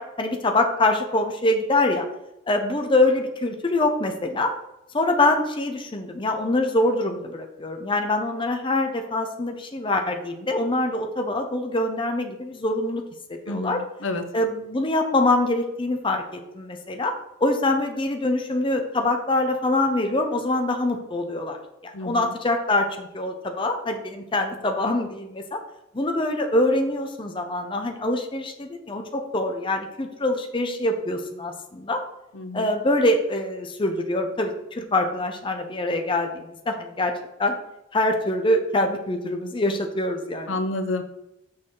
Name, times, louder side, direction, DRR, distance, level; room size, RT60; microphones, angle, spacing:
voice 1, 0.0-2.1 2.5-4.5 4.9-13.0 13.3-13.8 14.3-16.2 16.5-17.1 17.4-25.6 25.9-32.0 32.5-37.1 37.4-37.5 37.9-40.6, left 2 dB, 25° left, 4 dB, 0.7 m, -24 dB
voice 2, 13.5-14.2 21.9-22.3 32.3-32.7 40.5-41.0, left 2 dB, 80° left, 7 dB, 0.7 m, -29 dB
6.4 x 6.1 x 3.8 m, 0.86 s
head